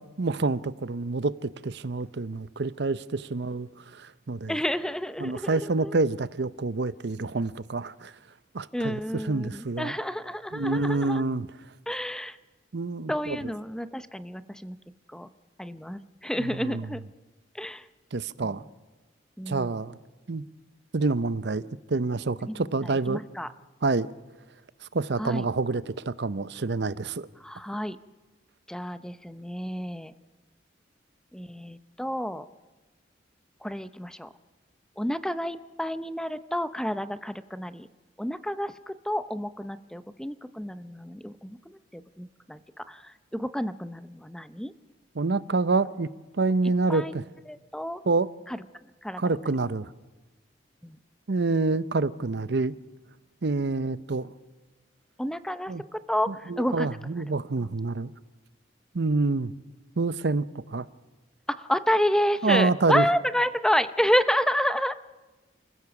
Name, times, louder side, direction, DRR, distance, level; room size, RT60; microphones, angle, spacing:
voice 1, 0.0-3.7 4.0-4.6 5.2-8.1 8.5-9.9 10.5-11.5 12.7-13.5 16.4-16.9 18.1-18.6 19.5-20.0 20.3-20.4 20.9-21.6 21.9-23.2 23.8-24.1 24.9-27.3 45.2-46.1 46.4-47.2 48.0-48.3 49.2-49.9 51.3-52.7 53.4-54.3 55.7-55.8 56.3-58.1 58.9-59.5 60.0-60.9 62.4-63.1, right 3 dB, 65° right, 16 dB, 0.7 m, -27 dB
voice 2, 4.5-6.0 8.7-11.2 11.9-12.4 13.1-14.8 15.1-15.3 15.6-17.0 17.5-17.8 18.4-18.6 19.4-19.7 22.4-23.5 25.2-25.4 27.4-28.0 28.7-30.1 31.3-32.4 33.6-34.3 35.0-37.9 38.2-41.6 41.9-42.6 42.9-44.7 46.9-47.2 47.5-48.0 48.5-48.6 49.0-49.4 50.8-51.0 55.2-55.7 56.1-56.9 61.6-65.0, equal, 5° left, 12 dB, 0.7 m, -30 dB
29.0 x 15.5 x 7.1 m, 1.2 s
head